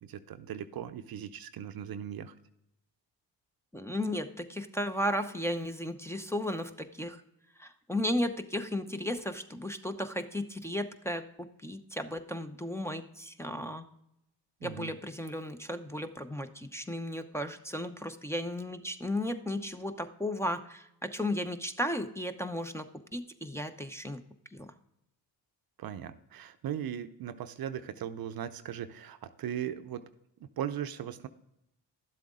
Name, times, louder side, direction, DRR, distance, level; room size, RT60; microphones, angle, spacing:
voice 1, 0.0-2.3 14.6-15.0 25.8-30.0 30.4-31.3, right 9 dB, 55° right, 11 dB, 0.7 m, -38 dB
voice 2, 3.7-7.2 7.6-13.9 14.6-24.2 24.5-24.7, left 1 dB, 5° left, 4 dB, 0.8 m, -35 dB
11.5 x 7.7 x 3.7 m, 0.81 s
supercardioid pair, 65°, 44 cm